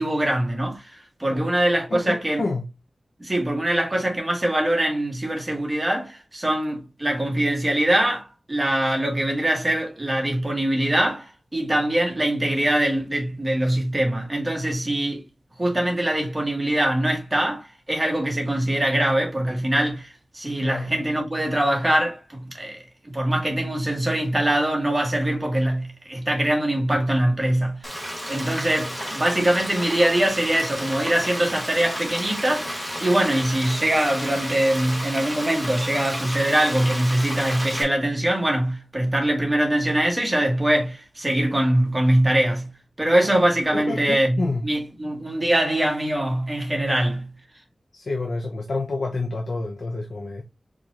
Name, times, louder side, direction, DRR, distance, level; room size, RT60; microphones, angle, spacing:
voice 1, 0.0-2.4 3.2-15.2 15.6-27.8 28.3-42.7 43.0-47.3, right 1 dB, 20° right, 1.6 m, -23 dB
voice 2, 1.9-2.7 20.6-20.9 43.7-44.6 47.9-50.4, left 3 dB, 80° left, 0.7 m, -28 dB
Frying (food), 27.8-37.8, equal, 5° left, 1.2 m, -31 dB
4.6 x 3.8 x 2.5 m
wide cardioid pair, 100°, 0 cm